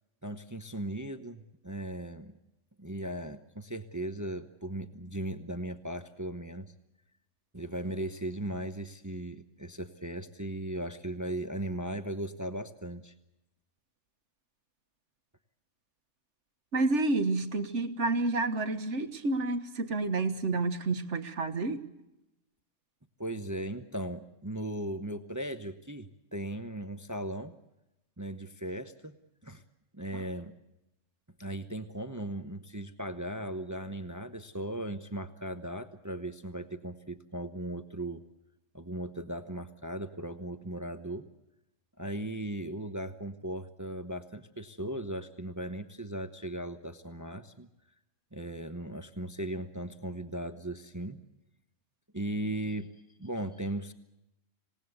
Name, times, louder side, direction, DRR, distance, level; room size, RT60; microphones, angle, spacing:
voice 1, 0.2-2.3 2.8-6.7 7.5-13.1 23.2-27.5 28.2-29.2 29.4-29.6 29.9-30.5 31.4-38.2 38.7-41.3 42.0-47.7 48.3-51.2 52.1-52.9 53.2-53.9, right 1 dB, 15° right, 9 dB, 0.9 m, -37 dB
voice 2, 16.7-21.8, right 3 dB, 65° right, 8 dB, 1.7 m, -29 dB
26.5 x 18.5 x 8.0 m, 0.92 s
omnidirectional pair, 1.3 m